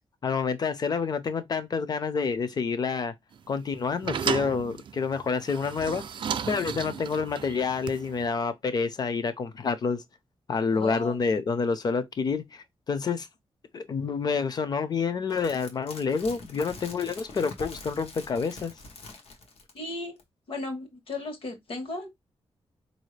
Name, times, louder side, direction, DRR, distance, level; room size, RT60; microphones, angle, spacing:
voice 1, 0.2-3.1 3.5-6.0 6.5-10.0 10.5-13.3 13.7-18.7, left 5 dB, 40° left, 0.6 m, -28 dB
sound 1, 3.3-8.3, right 7 dB, 55° right, 0.4 m, -34 dB
voice 2, 10.7-11.2 19.7-20.2 20.5-22.1, left 2 dB, 65° left, 1.4 m, -35 dB
sound 2, 15.3-19.9 20.2-20.3, left 3 dB, 85° left, 1.1 m, -45 dB
4.7 x 2.7 x 3.2 m
wide cardioid pair, 180°, 10 cm